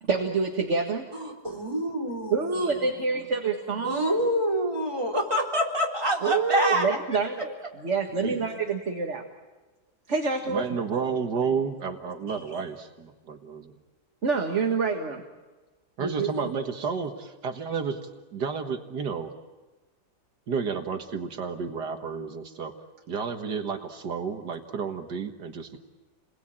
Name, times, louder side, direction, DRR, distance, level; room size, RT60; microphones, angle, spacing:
voice 1, 0.0-1.1 2.3-4.2 6.2-9.2 10.1-10.6 12.3-12.4 14.2-15.2 16.0-16.3, right 4 dB, 45° right, 3 dB, 2.0 m, -27 dB
voice 2, 1.1-2.7 3.8-7.0, equal, 15° right, 2 dB, 4.1 m, -27 dB
voice 3, 10.5-13.8 16.0-18.0 18.3-19.3 20.5-22.7 23.1-25.8, right 5 dB, 80° right, 5 dB, 2.1 m, -31 dB
29.5 x 21.0 x 8.9 m, 1.2 s
omnidirectional pair, 1.8 m